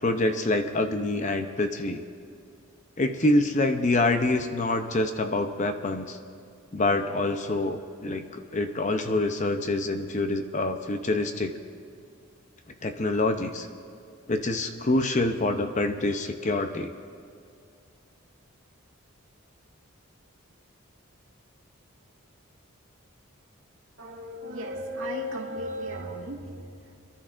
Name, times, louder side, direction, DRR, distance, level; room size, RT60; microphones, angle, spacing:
voice 1, 0.0-2.0 3.0-6.2 6.7-11.5 12.8-13.7 14.3-16.9, left 2 dB, 35° left, 7 dB, 0.6 m, -26 dB
voice 2, 24.0-26.9, equal, 65° right, -2 dB, 2.1 m, -35 dB
27.5 x 12.0 x 2.5 m, 2.4 s
head